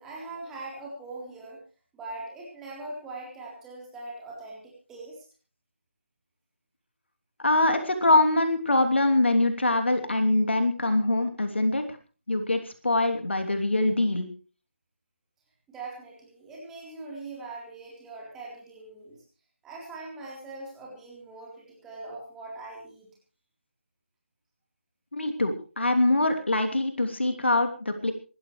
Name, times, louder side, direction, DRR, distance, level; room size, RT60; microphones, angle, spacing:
voice 1, 0.0-1.6 1.9-5.2 15.7-19.2 19.6-23.1, right 2 dB, 5° right, -4 dB, 3.8 m, -41 dB
voice 2, 7.4-11.8 12.3-14.3 25.1-28.1, left 2 dB, 60° left, 6 dB, 3.0 m, -24 dB
26.0 x 13.0 x 3.2 m, 0.36 s
figure-of-eight pair, 160°, 7 cm